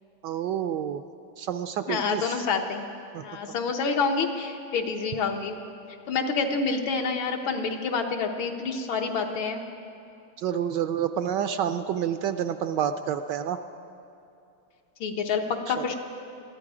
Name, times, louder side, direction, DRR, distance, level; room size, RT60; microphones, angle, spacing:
voice 1, 0.2-1.0 1.4-2.4 3.1-3.2 10.4-13.6 15.8-15.9, right 9 dB, 75° right, 9 dB, 1.1 m, -28 dB
voice 2, 1.9-2.9 3.2-5.6 6.1-9.6 15.0-15.9, left 5 dB, 80° left, 3 dB, 1.9 m, -28 dB
20.5 x 14.0 x 4.9 m, 2.7 s
omnidirectional pair, 2.2 m